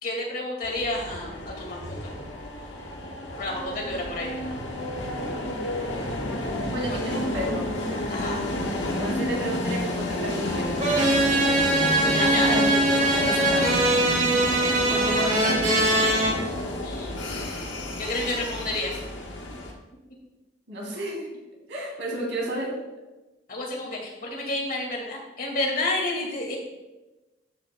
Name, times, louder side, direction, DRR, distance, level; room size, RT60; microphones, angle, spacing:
voice 1, 0.0-2.1 3.4-4.3 6.8-7.0 8.1-8.5 12.2-12.6 16.8-17.4 18.0-18.9 23.5-26.6, left 2 dB, 50° left, -1 dB, 2.0 m, -30 dB
sound 1, 0.6-19.7, left 1 dB, 80° left, 1.2 m, -31 dB
voice 2, 3.8-4.1 5.2-5.6 6.7-7.7 9.0-10.8 12.0-13.8 14.8-15.7 20.7-21.3 21.7-22.8, right 1 dB, 85° right, -2 dB, 2.7 m, -32 dB
sound 2, 10.8-16.3, right 1 dB, 40° right, 2.3 m, -22 dB
13.0 x 6.6 x 2.2 m, 1.1 s
head